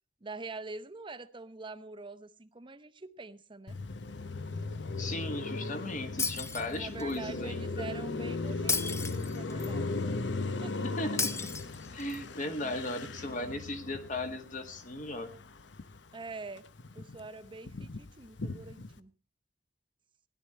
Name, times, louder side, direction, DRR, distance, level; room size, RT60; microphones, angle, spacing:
voice 1, 0.2-3.8 6.7-9.9 10.5-10.8 12.6-12.7 13.2-13.6 16.1-16.6 16.9-19.1, right 3 dB, 25° right, 0.8 m, -45 dB
Car passing by, 3.7-16.1 16.5-19.0, left 3 dB, 70° left, 0.8 m, -37 dB
voice 2, 5.0-8.0 10.8-11.5 11.9-15.3, left 1 dB, 45° left, 2.0 m, -37 dB
Shatter, 6.2-7.2 8.7-9.7 11.2-12.2, left 4 dB, 15° left, 0.7 m, -33 dB
17.0 x 11.5 x 4.4 m
head